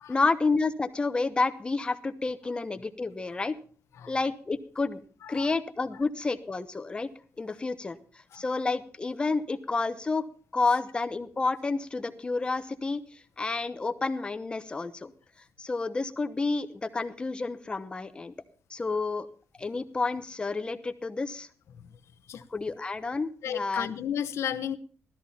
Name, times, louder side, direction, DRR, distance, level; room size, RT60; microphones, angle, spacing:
voice 1, 0.1-3.5 4.1-5.0 5.3-7.1 7.4-8.0 8.3-10.2 10.5-13.0 13.4-15.1 15.6-18.3 18.7-19.3 19.6-21.5 22.5-23.9, left 3 dB, 20° left, 10 dB, 0.9 m, -30 dB
voice 2, 5.2-5.5 8.3-8.4 22.3-22.4 23.4-24.8, left 9 dB, 70° left, 11 dB, 1.0 m, -33 dB
16.0 x 13.0 x 4.3 m, 0.42 s
wide cardioid pair, 155°, 5 cm